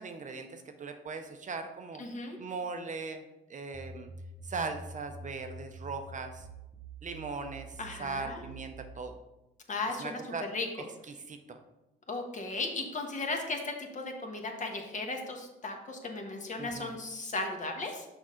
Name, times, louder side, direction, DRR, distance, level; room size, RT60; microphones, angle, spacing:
voice 1, 0.0-2.0 2.4-3.2 3.5-4.1 4.4-6.5 7.0-9.2 10.0-10.5 11.1-11.6 16.6-16.9, right 4 dB, 40° right, 6 dB, 0.7 m, -39 dB
voice 2, 2.0-2.4 7.8-8.4 9.7-10.2 10.5-10.7 12.1-18.1, left 3 dB, 40° left, 3 dB, 1.3 m, -36 dB
sound 1, 3.7-9.0, right 2 dB, 5° right, 1.1 m, -47 dB
6.3 x 5.3 x 3.7 m, 0.98 s
cardioid pair, 90°, 20 cm